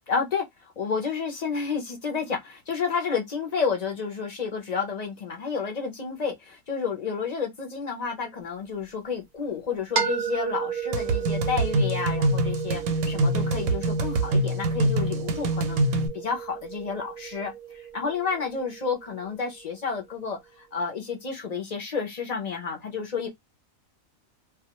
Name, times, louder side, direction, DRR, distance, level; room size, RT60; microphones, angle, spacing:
voice 1, 0.1-23.3, left 5 dB, 55° left, 0.4 m, -31 dB
sound 1, 10.0-19.8, right 8 dB, 55° right, 0.4 m, -34 dB
sound 2, 10.9-16.1, right 1 dB, 90° right, 1.0 m, -25 dB
2.3 x 2.2 x 2.8 m
omnidirectional pair, 1.4 m